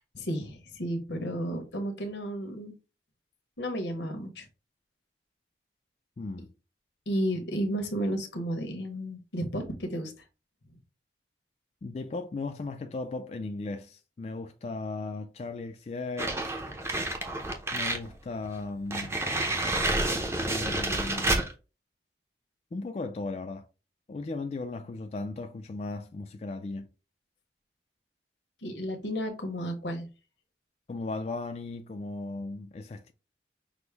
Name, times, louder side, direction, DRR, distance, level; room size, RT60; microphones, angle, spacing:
voice 1, 0.1-2.7 3.6-4.5 7.1-10.1 10.7-10.8 28.6-30.1, equal, 85° left, 1.0 m, -32 dB
voice 2, 6.2-6.5 11.8-16.5 17.7-19.2 20.4-21.3 22.7-23.6 24.1-26.9 30.9-33.1, left 3 dB, 35° left, 0.3 m, -36 dB
sound 1, 16.2-18.1 18.5-18.6 18.9-21.5, right 2 dB, 15° right, 0.6 m, -29 dB
5.9 x 2.1 x 3.3 m
head